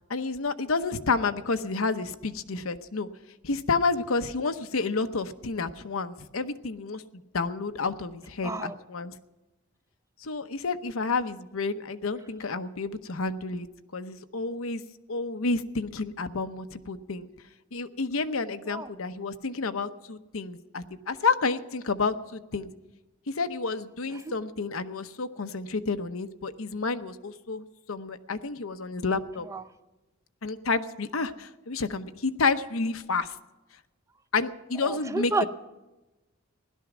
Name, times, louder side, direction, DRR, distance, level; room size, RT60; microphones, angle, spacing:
voice 1, 0.1-3.1 3.4-7.0 7.3-9.1 10.2-13.7 13.9-14.8 15.1-17.3 17.7-22.7 23.3-29.5 30.4-33.3 34.3-35.5, left 4 dB, 85° left, 9 dB, 0.9 m, -30 dB
voice 2, 8.4-8.8 18.7-18.9 24.1-24.4 29.5-29.6 34.8-35.5, right 2 dB, 15° right, 12 dB, 0.5 m, -31 dB
16.5 x 12.0 x 6.1 m, 1.1 s
head